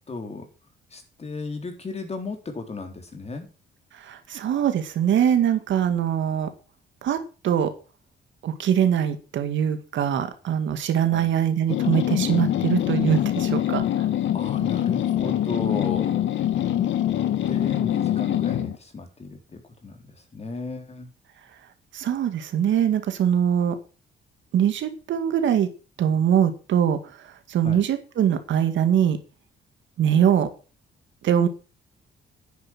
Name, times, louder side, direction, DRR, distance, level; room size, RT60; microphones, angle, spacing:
voice 1, 0.1-0.5 0.9-3.5 11.1-11.3 14.3-16.2 17.5-20.0 20.3-21.1 27.6-27.8, left 3 dB, 30° left, 4 dB, 4.1 m, -34 dB
voice 2, 4.0-6.5 7.0-7.2 7.4-7.7 8.4-14.0 21.9-23.8 24.5-25.7 26.0-27.0 27.5-29.2 30.0-30.5 31.2-31.5, right 9 dB, 70° right, 8 dB, 2.1 m, -22 dB
sound 1, 11.7-18.8, left 11 dB, 75° left, 1.8 m, -24 dB
10.0 x 9.6 x 6.1 m, 0.34 s
cardioid pair, 90°, 20 cm